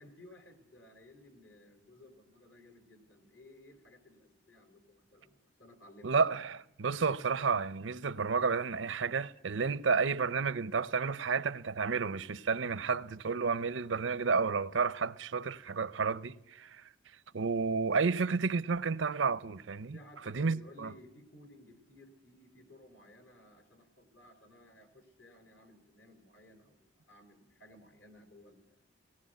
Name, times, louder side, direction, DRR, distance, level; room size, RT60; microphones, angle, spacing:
voice 1, 0.0-6.2 19.9-28.8, left 1 dB, 65° left, 3.7 m, -57 dB
voice 2, 6.0-16.9 17.3-20.0 20.3-20.9, right 5 dB, 85° right, 0.7 m, -31 dB
18.0 x 17.5 x 9.3 m
head